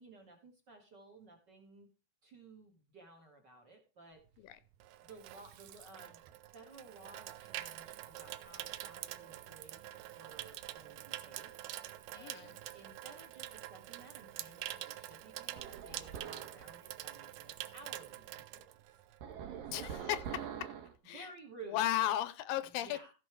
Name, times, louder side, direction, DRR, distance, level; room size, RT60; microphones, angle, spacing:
voice 1, 0.0-1.9 2.2-4.2 5.0-6.2 6.5-11.6 12.1-18.7 19.8-20.0 21.1-22.1 22.6-23.1, right 3 dB, 35° right, 2.0 m, -55 dB
Water tap faucet / Sink (filling or washing), 4.3-19.3 19.6-19.9, right 14 dB, 90° right, 1.6 m, -46 dB
voice 2, 12.2-12.5 19.7-20.7 21.0-21.3 21.7-23.0, left 13 dB, 80° left, 2.4 m, -35 dB
sound 1, 15.6-16.6 19.2-21.0, right 8 dB, 70° right, 3.0 m, -44 dB
15.0 x 6.1 x 4.6 m
omnidirectional pair, 4.2 m